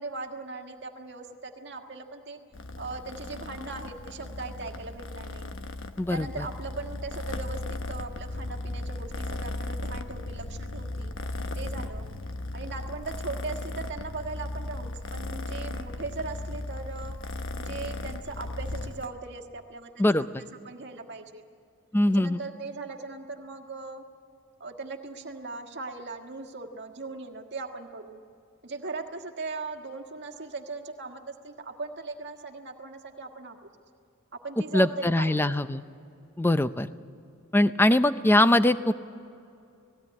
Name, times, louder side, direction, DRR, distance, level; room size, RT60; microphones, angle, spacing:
voice 1, 0.0-2.4 2.8-5.5 6.1-11.1 11.5-12.1 12.5-17.2 17.6-21.4 22.1-24.0 24.6-28.2 28.6-33.6 34.4-35.5, right 3 dB, 50° right, 4 dB, 1.7 m, -39 dB
Purr, 2.5-19.1, left 2 dB, 60° left, 1.1 m, -36 dB
voice 2, 21.9-22.4 34.7-35.8 36.4-36.9 37.5-38.9, left 1 dB, 10° left, 13 dB, 0.5 m, -22 dB
18.5 x 16.5 x 9.4 m, 2.5 s
head